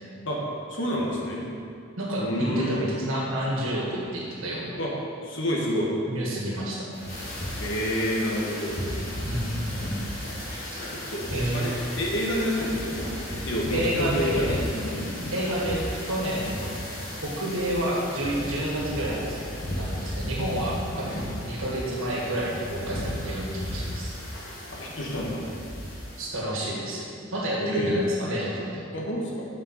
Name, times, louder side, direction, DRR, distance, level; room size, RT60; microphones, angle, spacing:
voice 1, 0.7-1.4 2.2-2.9 4.8-4.9 5.2-5.9 7.6-8.8 10.9-13.2 13.4-15.3 24.7-25.5 27.6-28.0 28.9-29.4, equal, 65° left, -3 dB, 1.4 m, -28 dB
voice 2, 2.0-4.7 6.0-6.9 9.2-10.0 10.7-10.8 11.3-11.7 13.7-14.6 15.3-16.7 17.2-24.1 26.2-28.8, right 1 dB, 80° right, -3 dB, 1.5 m, -30 dB
sound 1, 6.9-26.2, left 1 dB, 45° left, 1.9 m, -34 dB
6.9 x 5.3 x 5.7 m, 2.4 s
head